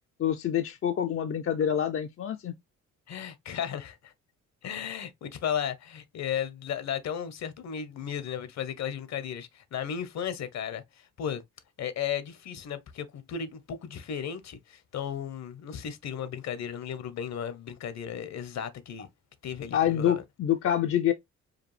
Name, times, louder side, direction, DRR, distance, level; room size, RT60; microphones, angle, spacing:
voice 1, 0.2-2.5 19.7-21.1, left 10 dB, 45° left, 0.5 m, -26 dB
voice 2, 3.1-4.1 4.6-11.4 11.8-19.1 19.4-20.2, left 8 dB, 60° left, 0.9 m, -35 dB
4.9 x 2.3 x 3.2 m
cardioid pair, 90°, 30 cm